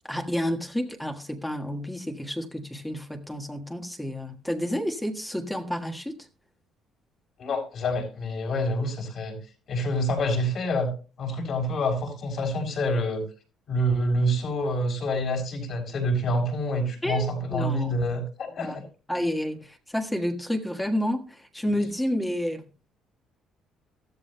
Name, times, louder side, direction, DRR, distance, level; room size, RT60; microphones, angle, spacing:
voice 1, 0.0-6.3 17.0-17.9 18.6-18.8 19.1-22.7, equal, 5° left, 1.4 m, -30 dB
voice 2, 7.4-9.4 9.7-10.9 11.2-13.2 13.7-18.8, equal, 55° left, 5.9 m, -27 dB
15.0 x 13.5 x 2.2 m
cardioid pair, 110°, 0 cm